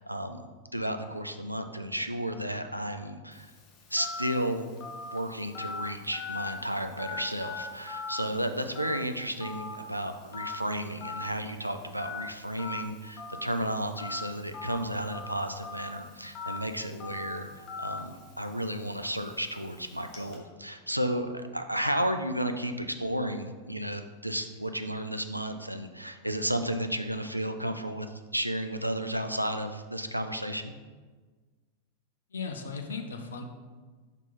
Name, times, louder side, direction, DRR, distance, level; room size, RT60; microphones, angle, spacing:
voice 1, 0.0-3.5 3.9-4.7 5.0-30.7, right 1 dB, 90° right, 7 dB, 0.4 m, -33 dB
Telephone, 3.3-20.4, left 4 dB, 35° left, 1.0 m, -42 dB
voice 2, 32.3-33.4, left 4 dB, 70° left, 4 dB, 0.5 m, -36 dB
5.6 x 4.5 x 3.9 m, 1.4 s
figure-of-eight pair, 90°, 0 cm